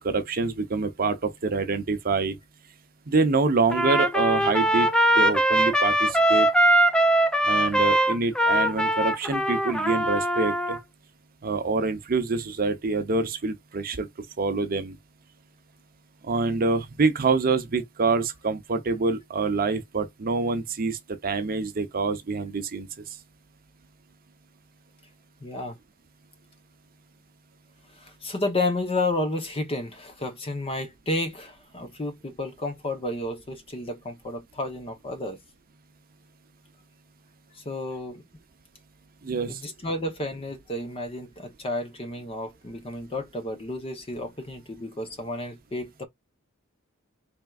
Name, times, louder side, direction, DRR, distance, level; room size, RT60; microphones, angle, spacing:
voice 1, 0.0-2.4 3.1-4.9 5.2-6.5 7.4-10.8 11.4-15.0 16.2-23.0 39.2-39.6, right 3 dB, 45° right, 0.6 m, -26 dB
Trumpet, 3.7-10.8, right 1 dB, 5° left, 0.4 m, -21 dB
voice 2, 25.4-25.8 27.9-35.4 37.5-38.2 39.5-46.1, left 2 dB, 25° left, 0.8 m, -31 dB
4.4 x 3.4 x 2.3 m
head